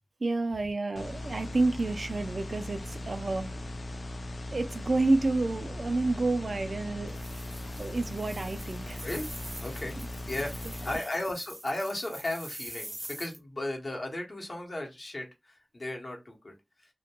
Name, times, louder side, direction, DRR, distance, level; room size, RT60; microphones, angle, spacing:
voice 1, 0.2-3.6 4.5-7.2 7.7-9.1 10.9-11.0, right 2 dB, 70° right, 0.3 m, -29 dB
sound 1, 1.0-11.0, left 1 dB, 70° left, 0.3 m, -39 dB
sound 2, 7.1-13.4, right 1 dB, 20° right, 0.6 m, -45 dB
voice 2, 9.6-9.9 10.3-10.5 10.8-16.5, left 1 dB, 55° left, 0.8 m, -35 dB
2.2 x 2.1 x 2.8 m
wide cardioid pair, 55°, 0 cm